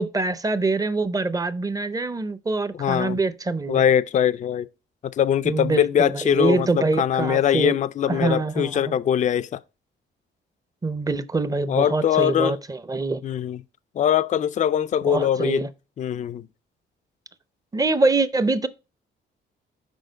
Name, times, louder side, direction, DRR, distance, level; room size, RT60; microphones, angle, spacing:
voice 1, 0.0-3.8 5.4-7.8 8.1-9.0 10.8-13.2 15.1-15.7 17.7-18.7, right 3 dB, 20° right, 0.5 m, -24 dB
voice 2, 2.8-3.2 3.7-4.7 5.1-9.6 11.7-12.6 13.2-13.6 14.0-15.6 16.0-16.5, left 9 dB, 40° left, 0.4 m, -22 dB
6.3 x 4.9 x 3.9 m
cardioid pair, 90°, 20 cm